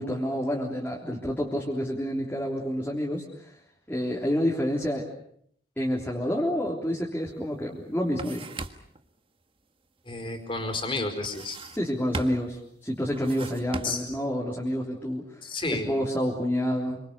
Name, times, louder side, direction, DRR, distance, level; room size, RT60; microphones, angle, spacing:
voice 1, 0.0-3.6 3.9-5.1 5.8-8.5 11.7-17.0, equal, 10° left, -2 dB, 3.5 m, -29 dB
sound 1, 7.3-7.4 7.8-9.0 11.2-11.9 12.1-12.6 13.1-14.2, right 2 dB, 30° right, 1.5 m, -38 dB
voice 2, 10.0-11.6 13.8-14.0 15.4-15.9, left 2 dB, 30° left, 7 dB, 4.7 m, -31 dB
27.5 x 25.5 x 6.8 m, 0.67 s
head